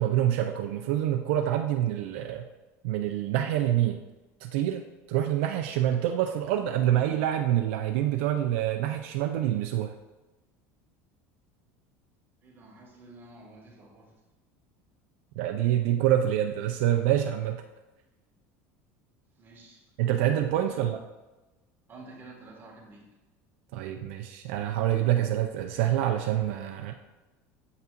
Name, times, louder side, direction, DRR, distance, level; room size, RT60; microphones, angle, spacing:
voice 1, 0.0-2.5 2.8-4.0 4.4-10.0 15.4-17.6 20.0-21.0 23.7-26.9, right 11 dB, 80° right, 5 dB, 0.4 m, -26 dB
voice 2, 12.4-14.2 19.4-19.8 20.6-20.8 21.9-23.1, right 2 dB, 30° right, -2 dB, 1.8 m, -50 dB
8.0 x 5.4 x 2.5 m, 1.1 s
supercardioid pair, 120°, 7 cm